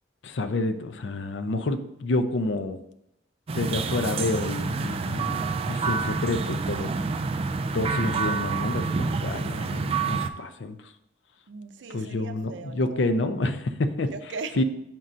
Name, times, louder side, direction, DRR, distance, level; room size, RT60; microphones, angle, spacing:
voice 1, 0.2-2.8 3.6-6.9 7.7-10.9 11.9-14.1 14.6-14.7, left 2 dB, 80° left, 0.5 m, -28 dB
sound 1, 3.5-10.3, right 4 dB, 35° right, 0.3 m, -28 dB
voice 2, 11.5-13.1 14.1-14.6, right 4 dB, 90° right, 0.5 m, -39 dB
7.4 x 2.5 x 5.4 m
head